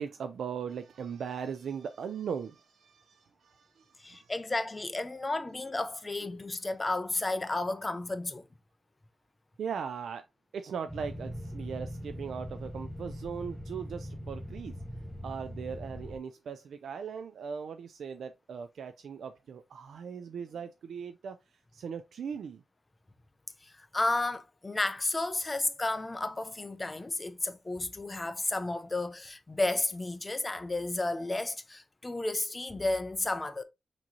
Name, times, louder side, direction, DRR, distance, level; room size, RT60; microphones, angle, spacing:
voice 1, 0.0-4.3 9.6-10.3 10.5-14.8 15.2-22.6, right 7 dB, 90° right, 0.3 m, -39 dB
voice 2, 4.0-8.4 23.9-33.6, left 2 dB, 25° left, 0.5 m, -32 dB
sound 1, 10.9-16.2, equal, ahead, 1.0 m, -41 dB
6.0 x 2.9 x 2.8 m
wide cardioid pair, 110°, 0 cm